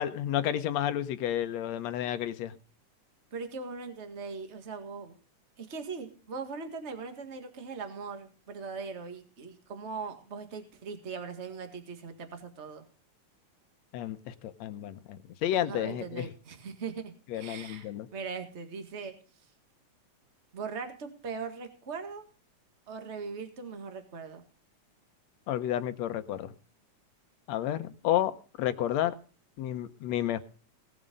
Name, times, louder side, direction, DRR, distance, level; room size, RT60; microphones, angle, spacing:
voice 1, 0.0-2.5 13.9-16.3 17.3-18.1 25.5-26.5 27.5-29.1 29.6-30.4, left 11 dB, 75° left, 11 dB, 2.0 m, -31 dB
voice 2, 3.3-5.1 5.6-12.8 15.6-19.1 20.5-22.2 22.9-24.4, right 5 dB, 25° right, 6 dB, 1.7 m, -40 dB
18.5 x 7.3 x 5.2 m, 0.38 s
omnidirectional pair, 3.3 m